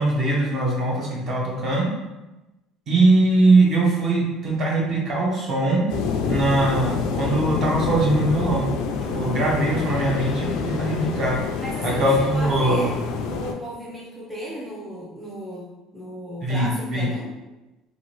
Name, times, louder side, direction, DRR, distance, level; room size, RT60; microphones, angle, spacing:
voice 1, 0.0-1.9 2.9-5.9 6.2-8.7 9.1-11.3 11.8-12.9 16.4-17.1, right 2 dB, 35° right, -3 dB, 0.8 m, -21 dB
sound 1, 5.9-13.5, left 5 dB, 70° left, 0.3 m, -27 dB
voice 2, 9.7-10.0 11.6-12.9 13.2-17.3, equal, 5° right, -7 dB, 0.5 m, -35 dB
2.7 x 2.5 x 3.0 m, 1.0 s
cardioid pair, 160°, 0 cm